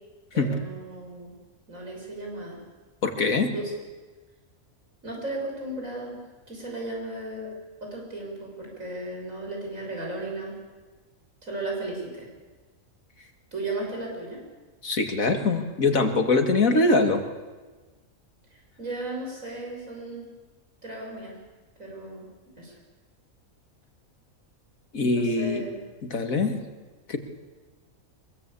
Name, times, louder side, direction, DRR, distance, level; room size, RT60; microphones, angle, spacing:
voice 1, 0.3-1.3 1.7-2.6 3.5-3.7 5.0-6.2 6.5-7.5 7.8-10.6 11.4-12.3 13.5-14.4 18.5-20.3 20.8-21.4 21.8-22.3 22.6-22.7 25.1-25.8, right 2 dB, 65° right, -1 dB, 6.8 m, -35 dB
voice 2, 3.0-3.5 14.8-17.2 24.9-25.6 26.1-26.6 27.1-27.2, left 3 dB, 75° left, 5 dB, 2.5 m, -23 dB
23.5 x 22.0 x 8.5 m, 1.3 s
omnidirectional pair, 1.5 m